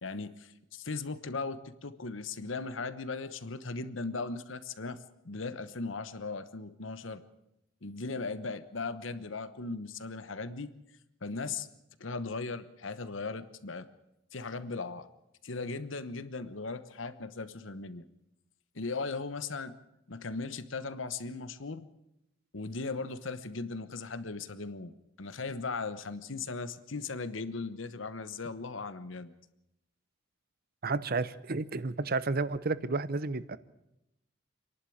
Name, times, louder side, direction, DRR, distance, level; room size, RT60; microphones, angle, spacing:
voice 1, 0.0-5.0 5.2-7.2 7.8-10.7 11.2-11.7 12.0-13.9 14.3-15.1 15.4-18.1 18.7-19.7 20.1-21.8 22.5-29.3, left 3 dB, 80° left, 12 dB, 1.1 m, -38 dB
voice 2, 30.8-33.6, right 3 dB, 50° right, 16 dB, 0.8 m, -31 dB
27.5 x 11.5 x 8.7 m, 0.87 s
head